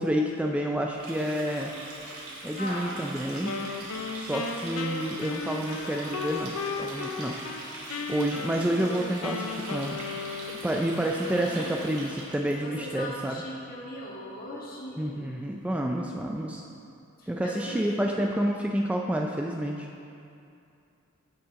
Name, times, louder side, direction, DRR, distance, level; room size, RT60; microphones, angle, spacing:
voice 1, 0.0-1.7 2.4-3.6 4.1-7.6 8.1-10.0 10.6-13.4 15.0-16.6 17.3-19.9, right 1 dB, 5° right, 1 dB, 0.3 m, -29 dB
Water tap faucet, 0.9-12.5, right 2 dB, 85° right, 2.4 m, -41 dB
voice 2, 2.6-2.9 11.2-11.7 12.6-15.3 17.2-18.2, left 1 dB, 45° left, -4 dB, 1.8 m, -39 dB
Wind instrument woodwind instrument, 3.4-7.6 7.9-10.8, left 4 dB, 70° left, 0.6 m, -35 dB
15.5 x 5.8 x 3.6 m, 2.6 s
head